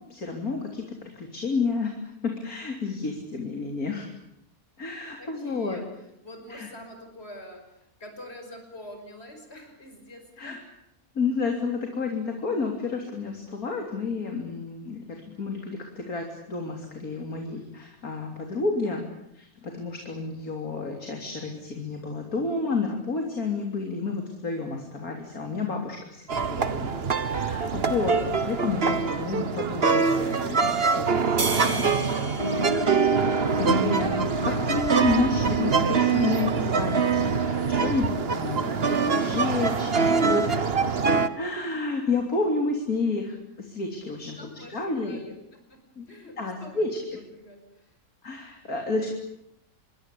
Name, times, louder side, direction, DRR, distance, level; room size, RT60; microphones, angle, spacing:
voice 1, 0.1-4.1 4.8-5.8 6.5-6.7 10.4-10.6 11.2-19.0 19.3-27.0 27.2-31.9 33.1-40.7 41.4-44.4 44.7-45.2 46.0-46.1 46.4-46.9 48.2-49.1, left 4 dB, 75° left, 2 dB, 3.8 m, -30 dB
voice 2, 5.2-5.9 6.2-10.6 44.4-45.8 46.1-46.8 47.2-48.0, left 1 dB, 45° left, 5 dB, 5.8 m, -45 dB
sound 1, 26.3-41.3, right 5 dB, 45° right, 1.5 m, -24 dB
sound 2, 31.4-34.0, right 2 dB, 70° right, 3.5 m, -33 dB
sound 3, 32.4-41.9, left 2 dB, 25° left, 1.3 m, -35 dB
27.0 x 23.0 x 8.6 m, 0.78 s
omnidirectional pair, 1.5 m